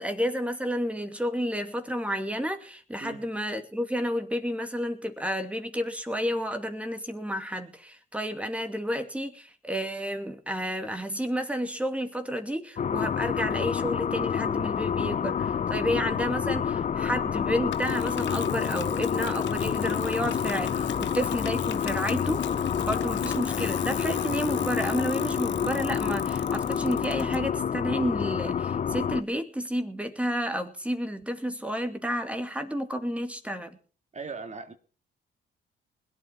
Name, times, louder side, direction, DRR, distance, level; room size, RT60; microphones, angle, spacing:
voice 1, 0.0-33.8, equal, 5° right, 2.5 m, -31 dB
sound 1, 12.8-29.2, left 7 dB, 40° left, 0.6 m, -28 dB
Bicycle, 17.7-27.4, left 11 dB, 65° left, 1.0 m, -41 dB
voice 2, 34.1-34.7, right 4 dB, 35° right, 2.2 m, -38 dB
20.5 x 9.1 x 5.9 m
cardioid pair, 90°, 20 cm